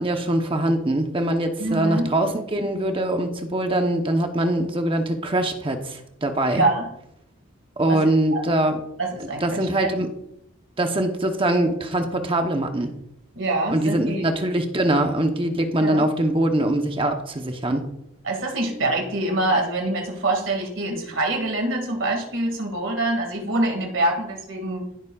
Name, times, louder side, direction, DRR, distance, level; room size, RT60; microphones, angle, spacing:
voice 1, 0.0-6.6 7.8-8.8 9.4-10.1 10.8-12.9 13.7-17.8, right 1 dB, 25° right, 5 dB, 0.9 m, -23 dB
voice 2, 1.6-2.1 6.5-6.9 7.9-8.0 8.3-8.4 9.0-9.7 13.4-14.2 15.8-16.1 18.2-24.9, right 2 dB, 65° right, 3 dB, 2.1 m, -25 dB
15.0 x 7.2 x 2.4 m, 0.79 s
head